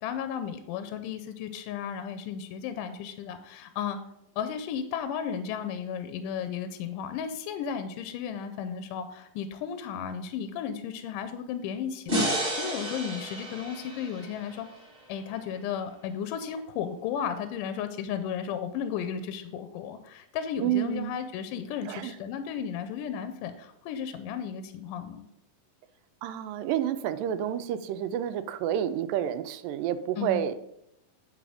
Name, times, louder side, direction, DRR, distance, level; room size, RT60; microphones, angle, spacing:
voice 1, 0.0-4.0 4.4-14.7 15.1-25.2 30.2-30.4, left 8 dB, 80° left, 9 dB, 2.1 m, -34 dB
sound 1, 12.1-15.3, equal, 20° right, 1.4 m, -32 dB
voice 2, 20.6-21.2 21.9-22.1 26.2-30.5, right 10 dB, 85° right, 11 dB, 2.2 m, -29 dB
10.0 x 3.8 x 4.9 m, 0.78 s
omnidirectional pair, 3.9 m